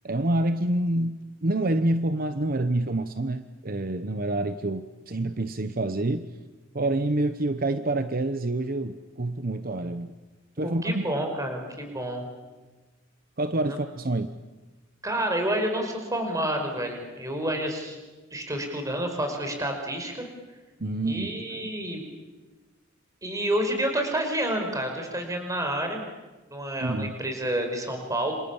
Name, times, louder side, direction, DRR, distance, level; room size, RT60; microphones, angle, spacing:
voice 1, 0.0-6.3 6.7-10.1 10.6-11.1 13.4-14.3 20.8-21.7 26.8-27.2, right 2 dB, 45° right, 10 dB, 1.0 m, -27 dB
voice 2, 10.8-12.3 15.0-18.0 18.3-20.3 21.0-22.0 23.2-26.0 26.5-28.3, right 1 dB, 15° right, 4 dB, 5.2 m, -29 dB
27.5 x 27.5 x 7.3 m, 1.2 s
head